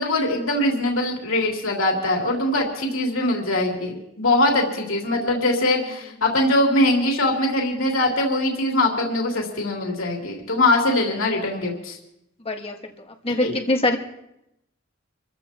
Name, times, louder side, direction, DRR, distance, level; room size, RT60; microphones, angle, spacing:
voice 1, 0.0-12.0 13.4-13.6, left 1 dB, 75° left, -1 dB, 3.2 m, -22 dB
voice 2, 12.4-12.9 13.2-14.0, left 2 dB, 30° left, 3 dB, 1.6 m, -23 dB
27.5 x 15.0 x 3.0 m, 0.85 s
head